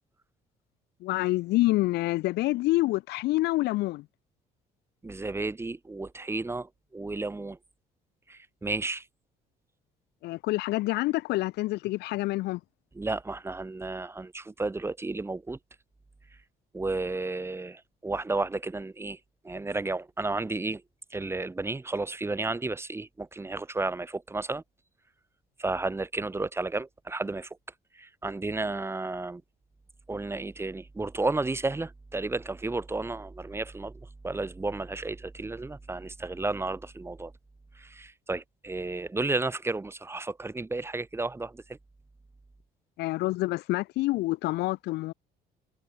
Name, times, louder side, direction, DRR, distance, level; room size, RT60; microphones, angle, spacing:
voice 1, 1.0-4.0 10.2-12.6 43.0-45.1, left 19 dB, 80° left, 0.7 m, -27 dB
voice 2, 5.0-7.6 8.3-9.1 12.9-15.6 16.7-19.2 19.4-20.8 21.1-24.6 25.6-27.5 27.9-29.4 30.1-37.3 37.7-41.8, right 3 dB, 15° right, 1.7 m, -32 dB
cardioid pair, 110°, 17 cm